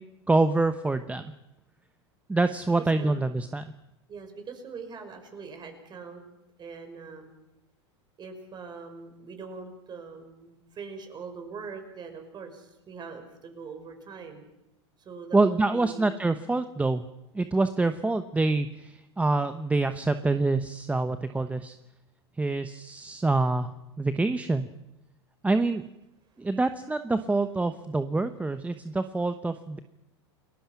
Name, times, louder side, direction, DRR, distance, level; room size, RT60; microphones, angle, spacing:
voice 1, 0.3-1.3 2.3-3.7 15.3-17.0 17.3-21.7 22.4-23.7 24.0-24.7 25.4-25.8 26.4-29.8, right 3 dB, 10° right, 10 dB, 1.0 m, -26 dB
voice 2, 4.1-6.2 6.6-7.3 8.2-14.5 15.0-16.2 17.8-17.9 28.8-28.9, right 5 dB, 30° right, 6 dB, 5.6 m, -42 dB
29.5 x 21.0 x 5.9 m, 0.90 s
hypercardioid pair, 105°, 15 cm